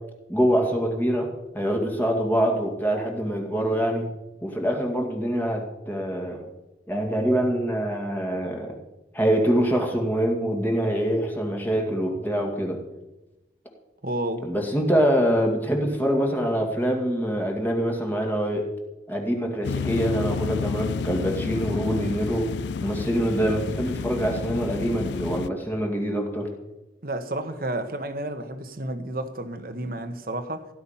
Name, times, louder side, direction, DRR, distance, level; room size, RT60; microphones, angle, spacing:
voice 1, 0.3-1.3 1.5-4.1 4.4-6.4 6.9-8.7 9.1-12.8 14.4-18.7 19.1-22.5 22.8-26.5, equal, 10° left, 2.2 m, -25 dB
voice 2, 14.0-14.5 27.0-30.7, right 1 dB, 50° right, 1.4 m, -31 dB
sound 1, 19.6-25.5, left 5 dB, 75° left, 0.4 m, -30 dB
16.5 x 10.5 x 5.7 m
head